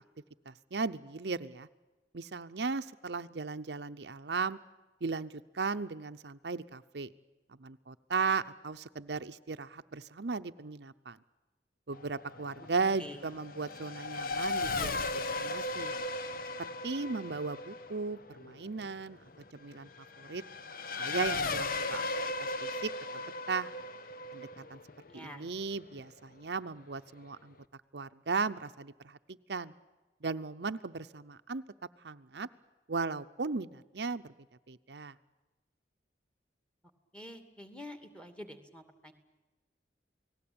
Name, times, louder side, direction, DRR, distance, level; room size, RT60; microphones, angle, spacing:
voice 1, 0.5-1.7 2.1-4.6 5.0-7.1 7.6-11.2 11.9-15.9 16.6-19.2 19.5-19.9 20.2-20.4 21.0-22.0 22.4-22.9 23.2-23.7 24.3-24.8 25.1-27.5 27.9-29.2 29.5-29.7 30.2-31.6 32.0-32.5 32.9-34.2 34.7-35.1, right 4 dB, 70° right, 10 dB, 0.7 m, -36 dB
Race car auto racing / Accelerating revving vroom, 11.9-26.0, left 3 dB, 55° left, 1.1 m, -37 dB
voice 2, 25.1-25.5 37.1-39.1, left 1 dB, 5° left, 8 dB, 2.5 m, -47 dB
29.5 x 19.0 x 8.7 m, 1.2 s
head